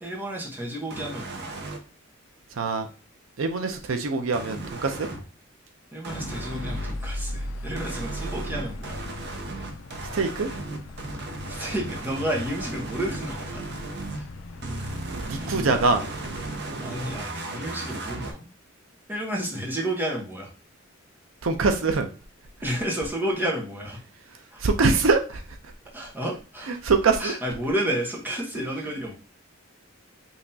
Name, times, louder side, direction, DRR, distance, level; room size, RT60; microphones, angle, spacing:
voice 1, 0.0-1.6 5.9-9.0 11.4-13.6 14.2-15.0 15.4-15.5 16.8-18.5 19.1-20.5 22.6-24.0 24.5-24.9 25.9-26.8 27.2-29.1, right 1 dB, 10° right, -2 dB, 1.1 m, -31 dB
sound 1, 0.9-1.8 4.3-5.2 6.0-6.9 7.8-14.2 14.6-18.3, right 2 dB, 55° right, 0.8 m, -35 dB
voice 2, 2.6-2.9 3.4-5.1 10.1-10.5 15.1-16.0 21.4-22.1 24.6-25.4 26.8-27.3, right 4 dB, 85° right, 6 dB, 0.6 m, -23 dB
sound 2, 6.1-16.6, left 1 dB, 70° left, 0.6 m, -38 dB
5.6 x 3.0 x 2.7 m, 0.34 s
head